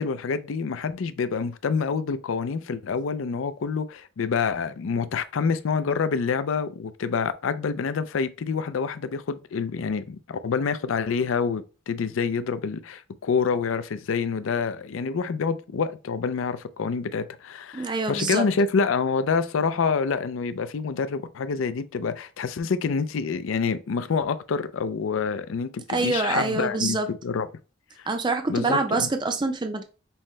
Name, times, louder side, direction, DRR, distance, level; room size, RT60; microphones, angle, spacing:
voice 1, 0.0-27.5 28.5-29.1, left 5 dB, 80° left, 0.4 m, -27 dB
voice 2, 17.7-18.4 25.9-27.1 28.1-29.8, right 3 dB, 20° right, 0.4 m, -25 dB
5.5 x 2.2 x 3.1 m
head